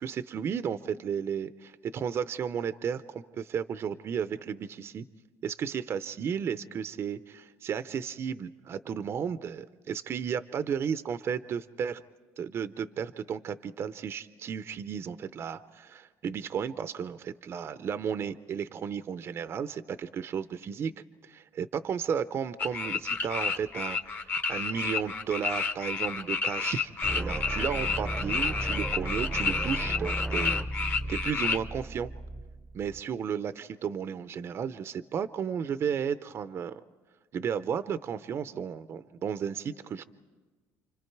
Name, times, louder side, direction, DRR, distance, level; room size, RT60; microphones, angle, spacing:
voice 1, 0.0-5.0 5.4-12.0 12.4-20.9 21.2-30.6 30.9-32.1 32.7-36.8 37.3-40.1, right 7 dB, 45° right, 12 dB, 0.6 m, -33 dB
sound 1, 22.6-31.6, left 4 dB, 35° left, 1.2 m, -30 dB
sound 2, 27.0-33.0, right 2 dB, 10° right, 0.7 m, -35 dB
29.0 x 25.0 x 4.6 m, 1.4 s
cardioid pair, 100°, 6 cm